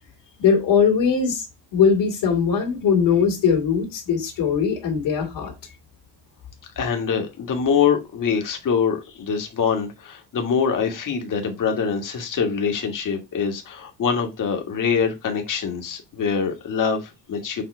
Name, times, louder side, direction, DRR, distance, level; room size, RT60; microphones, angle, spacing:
voice 1, 0.4-1.5 1.7-5.5, left 6 dB, 60° left, 2.7 m, -20 dB
voice 2, 6.7-17.6, left 6 dB, 40° left, 1.7 m, -24 dB
7.5 x 3.0 x 4.4 m
cardioid pair, 145°, 48 cm